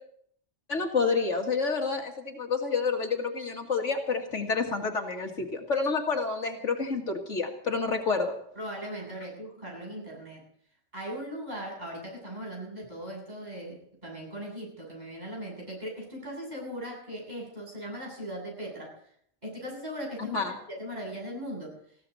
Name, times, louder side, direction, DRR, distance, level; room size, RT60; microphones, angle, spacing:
voice 1, 0.7-8.3 20.2-20.6, left 4 dB, 70° left, 3 dB, 2.3 m, -29 dB
voice 2, 8.6-10.5 10.9-18.9 19.4-21.7, equal, 35° right, -2 dB, 8.3 m, -39 dB
20.5 x 16.0 x 4.1 m, 0.66 s
omnidirectional pair, 1.3 m